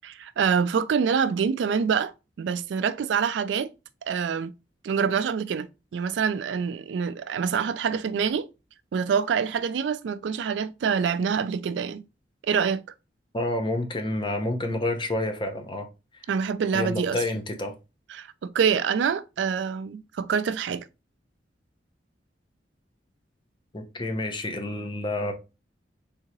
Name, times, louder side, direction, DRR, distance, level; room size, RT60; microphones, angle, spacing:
voice 1, 0.0-3.7 4.1-4.5 4.8-5.7 5.9-8.5 8.9-12.0 12.5-12.8 16.3-17.2 18.1-20.9, right 6 dB, 85° right, 0.3 m, -26 dB
voice 2, 13.3-15.9 16.7-17.7 23.7-25.3, left 1 dB, 25° left, 0.7 m, -29 dB
3.6 x 2.8 x 2.8 m
head